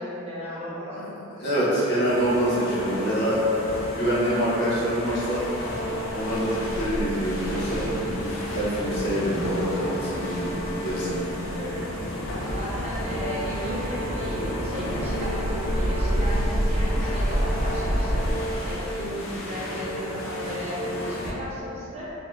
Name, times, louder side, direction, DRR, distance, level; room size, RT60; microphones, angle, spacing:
voice 1, 0.0-1.1 11.5-11.8 12.5-18.2 18.6-22.1, equal, 30° right, -8 dB, 0.6 m, -35 dB
voice 2, 1.1-3.4 3.8-5.4 6.1-10.5 10.8-11.3, right 1 dB, 50° left, -9 dB, 0.9 m, -26 dB
sound 1, 2.1-21.3, left 1 dB, 70° left, 0.5 m, -33 dB
sound 2, 5.0-18.3, equal, 90° right, 0.6 m, -30 dB
4.4 x 2.3 x 2.2 m, 2.9 s
head